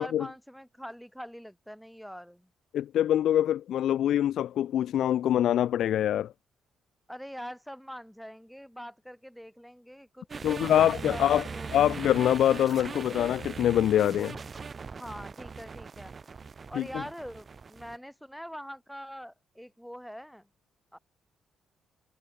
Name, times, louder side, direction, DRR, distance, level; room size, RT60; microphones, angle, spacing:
voice 1, 0.0-2.5 7.1-11.8 14.7-16.1 16.7-20.5 20.9-21.0, equal, ahead, 3.3 m, -43 dB
voice 2, 2.7-6.3 10.4-11.4 11.7-14.4 16.8-16.9, left 11 dB, 75° left, 0.3 m, -24 dB
sound 1, 10.3-18.0, right 5 dB, 35° right, 0.6 m, -40 dB
cardioid pair, 90°, 0 cm